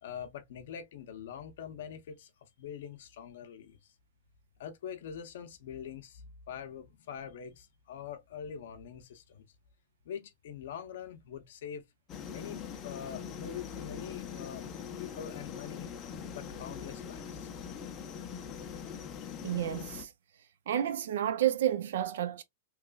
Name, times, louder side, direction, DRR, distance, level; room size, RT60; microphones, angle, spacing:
voice 1, 0.0-3.8 4.6-9.4 10.0-11.8 12.3-15.9 16.3-17.5, left 8 dB, 70° left, 0.6 m, -44 dB
sound 1, 12.1-20.1, left 7 dB, 25° left, 0.5 m, -42 dB
voice 2, 19.4-20.1 20.7-22.4, right 11 dB, 75° right, 0.4 m, -30 dB
3.0 x 2.4 x 2.2 m
supercardioid pair, 150°, 0 cm